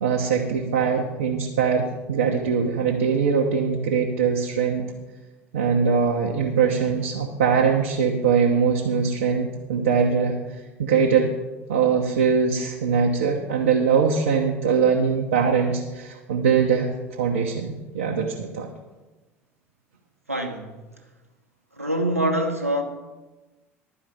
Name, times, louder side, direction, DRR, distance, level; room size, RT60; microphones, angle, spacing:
voice 1, 0.0-4.9 5.5-10.4 10.8-11.3 11.7-18.7, right 6 dB, 70° right, -1 dB, 1.1 m, -22 dB
voice 2, 20.3-20.7 21.7-22.8, right 1 dB, 90° right, 5 dB, 1.2 m, -24 dB
12.0 x 4.9 x 8.7 m, 1.2 s
figure-of-eight pair, 65°, 7 cm